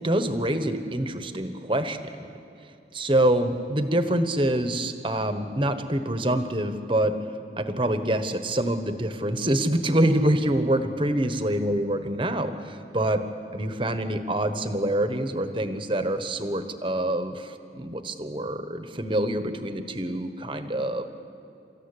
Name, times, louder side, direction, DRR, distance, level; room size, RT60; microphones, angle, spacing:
voice 1, 0.0-2.1 2.9-7.2 7.6-13.2 13.5-21.0, right 1 dB, 30° right, 9 dB, 1.2 m, -26 dB
28.5 x 14.5 x 9.9 m, 2.7 s
head